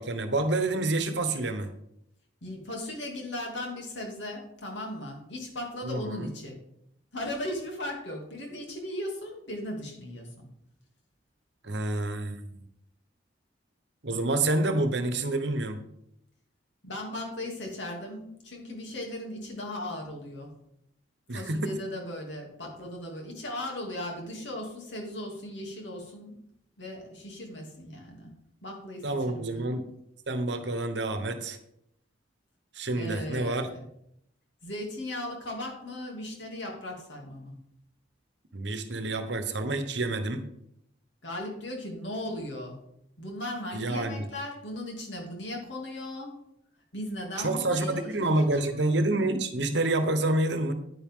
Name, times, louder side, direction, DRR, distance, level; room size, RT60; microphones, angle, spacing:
voice 1, 0.0-1.7 5.8-6.3 11.6-12.5 14.0-15.8 21.3-21.7 29.0-29.9 30.3-31.6 32.7-33.7 38.5-40.4 43.7-44.3 47.4-50.7, right 2 dB, 65° right, 8 dB, 1.1 m, -28 dB
voice 2, 2.4-6.6 7.1-10.5 16.8-20.5 21.3-26.3 26.8-28.3 28.6-29.6 32.9-33.9 34.6-37.5 41.2-42.8 43.2-46.3 46.9-48.6, left 1 dB, 70° left, 0 dB, 2.8 m, -37 dB
9.7 x 9.7 x 3.8 m, 0.75 s
head